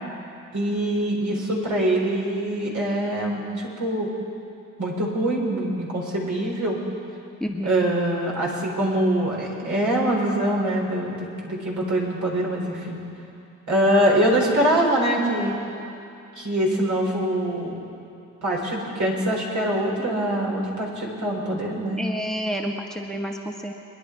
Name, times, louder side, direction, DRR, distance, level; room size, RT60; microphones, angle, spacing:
voice 1, 0.5-4.1 4.8-6.8 7.6-13.0 13.7-15.5 16.3-17.8 18.4-22.0, right 1 dB, 60° right, -3 dB, 4.6 m, -24 dB
voice 2, 7.4-7.9 22.0-23.7, equal, ahead, 1 dB, 1.4 m, -29 dB
23.5 x 10.5 x 4.8 m, 2.7 s
supercardioid pair, 55°, 33 cm